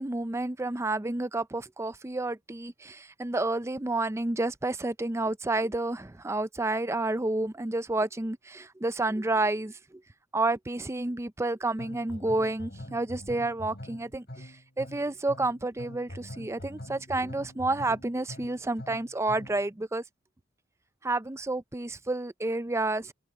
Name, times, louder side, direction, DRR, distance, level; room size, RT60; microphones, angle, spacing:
voice 1, 0.0-9.8 10.3-20.0 21.0-23.1, right 2 dB, 15° right, 0.5 m, -30 dB
sound 1, 11.8-19.7, equal, 55° left, 6.6 m, -44 dB
open air
head